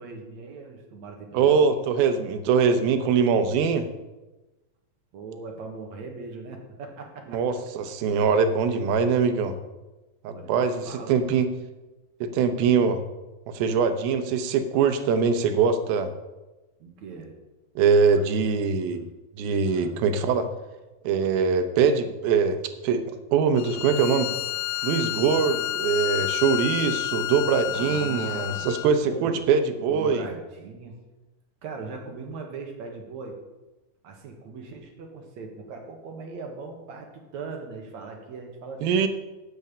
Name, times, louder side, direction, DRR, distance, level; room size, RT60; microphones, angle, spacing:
voice 1, 0.0-1.8 5.1-7.6 10.3-11.4 16.8-17.4 18.1-18.2 19.7-20.0 27.7-28.7 29.0-29.5 29.9-31.0 31.6-33.4 34.0-39.0, right 4 dB, 60° right, 2 dB, 2.4 m, -39 dB
voice 2, 1.3-3.9 7.3-9.6 10.2-11.5 12.2-13.0 13.5-16.1 17.8-19.1 19.4-20.5 21.0-24.3 24.8-30.3 38.8-39.1, right 6 dB, 85° right, 9 dB, 2.8 m, -23 dB
Bowed string instrument, 23.6-28.9, left 15 dB, 90° left, 2.4 m, -30 dB
10.5 x 5.5 x 8.5 m, 1.1 s
omnidirectional pair, 4.2 m